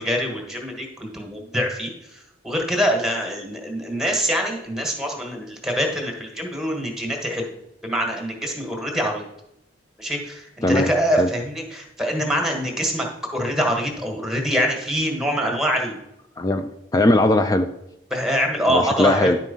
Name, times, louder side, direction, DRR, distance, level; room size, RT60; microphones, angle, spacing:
voice 1, 0.0-2.2 2.4-7.5 7.8-9.2 10.0-13.1 13.3-16.0 18.1-19.3, equal, 5° right, 1 dB, 1.5 m, -24 dB
voice 2, 16.4-17.7 18.7-19.4, left 1 dB, 20° left, 8 dB, 0.4 m, -19 dB
11.0 x 4.5 x 5.4 m, 0.84 s
head